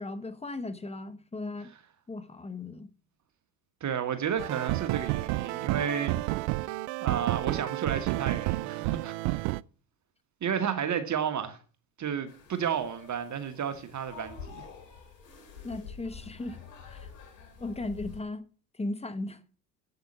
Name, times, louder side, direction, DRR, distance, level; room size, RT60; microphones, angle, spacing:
voice 1, 0.0-1.7 2.1-2.9 15.6-16.6 16.9-17.1 17.6-18.4 18.7-19.4, left 2 dB, 15° left, 1.0 m, -36 dB
voice 2, 3.8-6.2 6.6-6.7 7.0-9.5 10.4-11.6 12.0-14.6, right 8 dB, 35° right, 1.4 m, -32 dB
sound 1, 4.4-9.6, right 19 dB, 60° right, 0.5 m, -30 dB
sound 2, 12.3-18.2, left 6 dB, 85° left, 3.0 m, -47 dB
7.9 x 7.8 x 7.4 m
hypercardioid pair, 70°, 48 cm